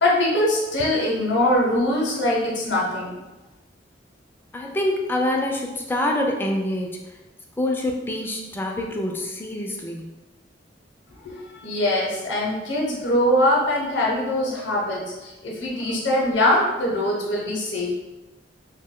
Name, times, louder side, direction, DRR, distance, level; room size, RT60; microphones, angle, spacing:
voice 1, 0.0-3.2 11.2-17.9, left 1 dB, 70° left, -3 dB, 0.6 m, -22 dB
voice 2, 4.5-7.0 7.6-10.1, left 1 dB, 10° left, 1 dB, 0.3 m, -26 dB
2.6 x 2.1 x 3.6 m, 1.1 s
head